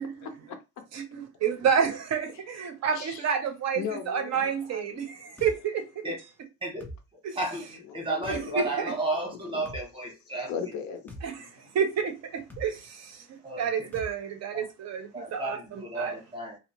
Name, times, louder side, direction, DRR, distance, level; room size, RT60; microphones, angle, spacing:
voice 1, 0.2-0.8 2.9-3.2 3.8-5.0 7.9-8.6 9.5-9.7 10.5-11.7, left 7 dB, 55° left, 0.5 m, -38 dB
voice 2, 0.9-6.0 7.2-7.4 8.3-9.0 11.2-13.3 13.6-16.1, right 7 dB, 50° right, 0.6 m, -29 dB
sound 1, 5.4-5.6 6.8-7.0 8.2-8.4 9.7-9.9 11.1-11.3 12.5-12.7 13.9-14.1, equal, 5° left, 0.3 m, -41 dB
voice 3, 7.4-10.5 13.4-13.9 14.5-14.7 15.1-16.6, right 2 dB, 15° right, 0.7 m, -33 dB
2.6 x 2.0 x 2.8 m
cardioid pair, 160°, 35 cm